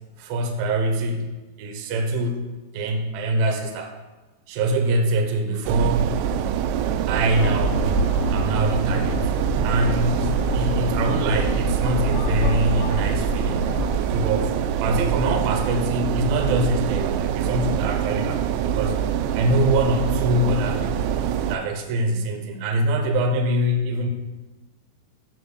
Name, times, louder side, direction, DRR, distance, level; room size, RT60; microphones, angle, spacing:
voice 1, 0.2-4.0 4.5-6.2 7.1-7.8 8.3-9.3 9.6-13.6 14.1-19.0 19.3-21.1 21.5-24.1, right 1 dB, 70° right, 4 dB, 2.4 m, -24 dB
sound 1, 5.7-21.6, right 9 dB, 90° right, 2.8 m, -24 dB
sound 2, 7.4-14.0, left 2 dB, 85° left, 3.2 m, -28 dB
8.3 x 4.8 x 6.4 m, 1.2 s
omnidirectional pair, 5.1 m